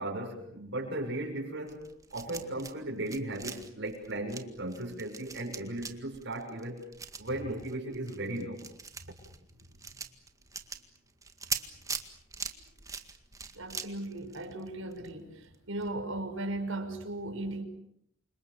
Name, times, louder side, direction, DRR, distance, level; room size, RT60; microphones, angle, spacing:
voice 1, 0.0-6.8 7.2-8.6, right 1 dB, 60° right, 0 dB, 6.6 m, -36 dB
sound 1, 1.7-2.8 3.0-15.1 15.4-15.5 15.8-15.9, right 5 dB, 15° right, 1.9 m, -41 dB
voice 2, 13.5-17.6, right 2 dB, 80° right, 5 dB, 5.6 m, -37 dB
29.5 x 26.5 x 7.0 m, 0.70 s
head